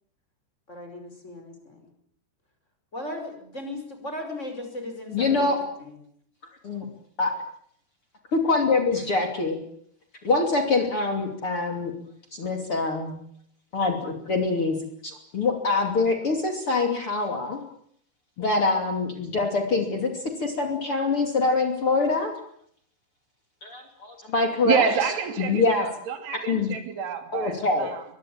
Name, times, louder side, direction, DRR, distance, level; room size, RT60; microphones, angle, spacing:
voice 1, 0.7-1.9 2.9-5.5 5.8-5.9, left 1 dB, 15° left, 5 dB, 5.3 m, -37 dB
voice 2, 5.1-5.6 6.6-6.9 7.2-7.3 8.4-9.6 10.2-11.9 12.3-13.2 13.7-14.8 15.0-17.6 18.4-20.1 20.4-22.3 23.6-24.8 25.4-25.9 26.5-26.7 27.3-27.9, left 3 dB, 35° left, 4 dB, 3.2 m, -24 dB
voice 3, 24.6-28.0, right 7 dB, 75° right, 8 dB, 4.7 m, -28 dB
23.0 x 22.5 x 8.8 m, 0.66 s
omnidirectional pair, 4.7 m